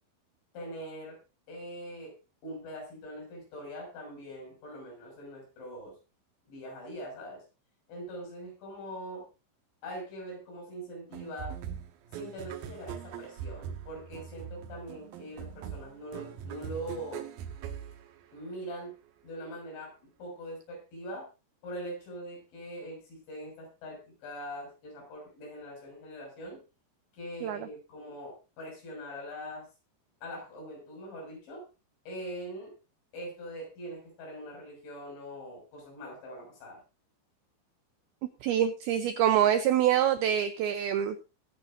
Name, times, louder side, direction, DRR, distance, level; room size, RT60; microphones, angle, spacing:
voice 1, 0.5-1.2 1.5-2.1 2.4-6.0 6.5-7.4 7.9-9.3 9.8-11.6 12.1-17.3 18.3-19.0 19.2-21.3 21.6-26.6 27.1-29.7 30.2-31.7 32.1-32.7 33.1-36.8, equal, 80° left, 0 dB, 8.7 m, -42 dB
sound 1, 11.1-18.7, right 8 dB, 70° right, 2.4 m, -42 dB
voice 2, 38.4-41.3, right 10 dB, 90° right, 10 dB, 2.2 m, -25 dB
22.0 x 9.2 x 2.6 m, 0.29 s
omnidirectional pair, 5.3 m